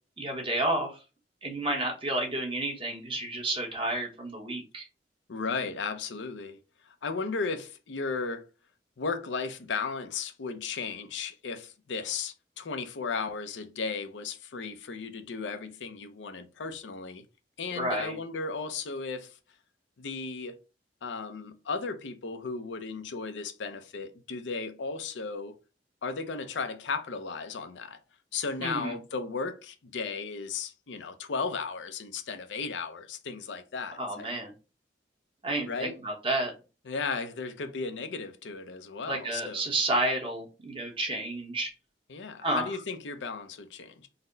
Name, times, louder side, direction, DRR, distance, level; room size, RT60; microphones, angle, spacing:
voice 1, 0.2-1.0 1.4-4.9 17.7-18.2 28.6-28.9 34.0-34.5 35.4-36.5 39.1-41.7 42.4-42.7, right 1 dB, 30° right, 1.0 m, -31 dB
voice 2, 5.3-6.6 6.9-8.5 9.0-17.2 17.6-19.4 20.0-20.6 21.0-25.6 26.0-28.0 28.3-34.3 35.7-36.0 36.9-39.6 42.1-44.1, left 4 dB, 85° left, 0.6 m, -35 dB
4.1 x 2.1 x 3.8 m
head